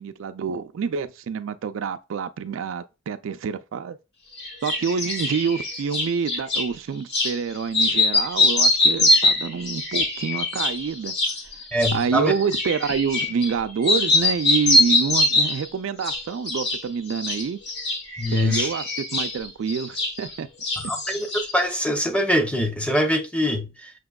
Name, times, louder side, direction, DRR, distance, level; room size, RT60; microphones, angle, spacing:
voice 1, 0.0-4.0 4.6-11.1 11.9-17.6 18.3-20.5 20.8-21.0, right 6 dB, 70° right, 0.4 m, -27 dB
sound 1, 4.4-6.7 7.1-7.4 7.7-13.6 13.8-15.7 16.0-16.8 17.1-20.4 20.6-21.6, left 2 dB, 55° left, 1.1 m, -23 dB
voice 2, 11.7-12.3 18.2-18.7 20.8-23.9, equal, 5° left, 0.6 m, -23 dB
6.0 x 2.8 x 2.3 m
head